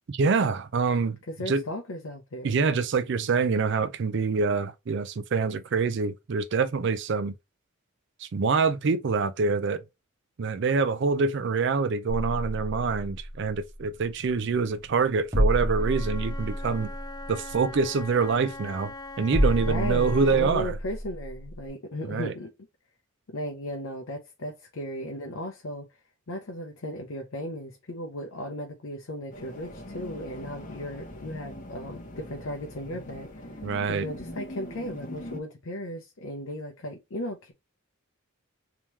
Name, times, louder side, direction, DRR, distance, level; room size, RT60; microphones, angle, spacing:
voice 1, 0.1-1.2 1.5-1.6 2.4-7.3 8.2-9.8 10.4-16.9 17.3-20.8 22.1-22.3 33.6-34.1, right 4 dB, 55° right, 0.4 m, -25 dB
voice 2, 1.3-2.6 19.6-22.5 23.3-25.9 26.3-33.3 33.9-37.5, left 1 dB, 70° left, 0.7 m, -36 dB
sound 1, 13.3-21.7, equal, 15° right, 1.3 m, -30 dB
Wind instrument woodwind instrument, 15.7-20.5, left 2 dB, 20° left, 0.4 m, -42 dB
sound 2, 29.3-35.4, left 1 dB, 35° left, 1.2 m, -42 dB
3.6 x 2.9 x 3.0 m
head